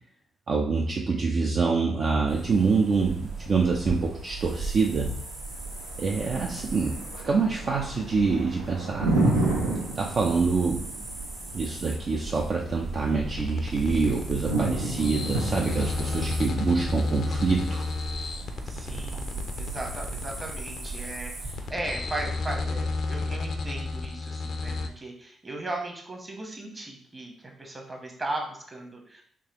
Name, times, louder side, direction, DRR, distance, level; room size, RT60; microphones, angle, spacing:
voice 1, 0.5-5.2 6.0-7.0 7.2-9.5 10.0-10.8 11.5-17.9, right 4 dB, 50° right, -1 dB, 0.4 m, -26 dB
sound 1, 2.3-21.7, right 3 dB, 65° right, 1.0 m, -38 dB
Thunder, 5.6-19.6, right 2 dB, 85° right, 0.7 m, -32 dB
voice 2, 6.2-6.9 15.8-16.4 18.6-29.2, right 2 dB, 25° right, 1 dB, 1.1 m, -37 dB
sound 2, 13.3-24.9, left 3 dB, 55° left, 0.4 m, -32 dB
3.7 x 2.9 x 2.9 m, 0.64 s
figure-of-eight pair, 40°, 0 cm